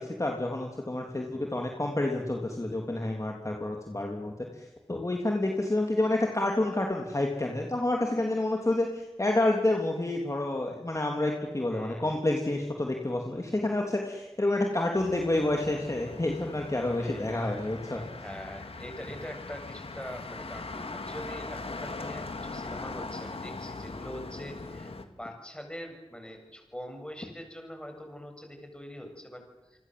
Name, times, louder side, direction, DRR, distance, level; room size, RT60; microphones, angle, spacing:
voice 1, 0.0-18.0, left 2 dB, 30° left, 1 dB, 3.3 m, -29 dB
voice 2, 1.2-1.6 11.7-12.2 16.9-17.5 17.9-29.8, equal, 10° left, 4 dB, 7.4 m, -43 dB
Motor vehicle (road), 14.9-25.1, left 3 dB, 70° left, 2.5 m, -40 dB
28.0 x 24.5 x 7.9 m, 1.0 s
wide cardioid pair, 65°, 10 cm